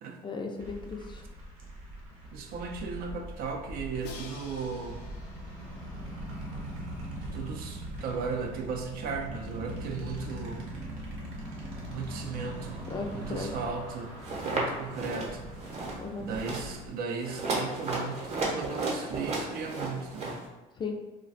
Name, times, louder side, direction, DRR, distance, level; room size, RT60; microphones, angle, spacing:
voice 1, 0.2-1.2 12.9-13.5 16.0-16.3 20.8-21.0, left 4 dB, 30° left, 3 dB, 0.4 m, -36 dB
sound 1, 0.6-16.9, right 1 dB, 90° right, 0.8 m, -41 dB
voice 2, 2.3-5.1 7.3-10.7 11.9-12.9 13.1-14.2 14.5-15.6 16.2-20.5, right 5 dB, 65° right, 3 dB, 0.5 m, -36 dB
Crash cymbal, 4.0-7.0, left 4 dB, 80° left, 0.5 m, -49 dB
sound 2, 14.2-14.6 14.9-15.3 15.6-16.0 16.3-16.7 17.2-20.4, right 2 dB, 40° right, 0.8 m, -33 dB
2.3 x 2.2 x 3.9 m, 1.1 s
cardioid pair, 100°, 17 cm